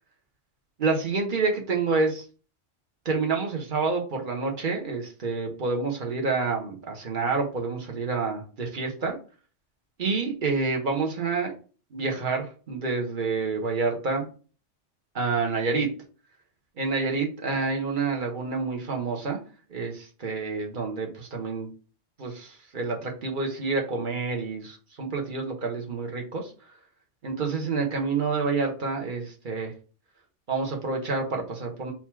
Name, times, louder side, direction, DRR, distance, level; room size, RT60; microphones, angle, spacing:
voice 1, 0.8-2.2 3.0-9.2 10.0-11.5 11.9-14.2 15.1-15.9 16.8-19.4 19.7-21.7 22.2-26.5 27.2-29.7 30.5-31.9, right 4 dB, 45° right, 1 dB, 1.1 m, -28 dB
4.0 x 2.9 x 4.5 m, 0.37 s
omnidirectional pair, 1.2 m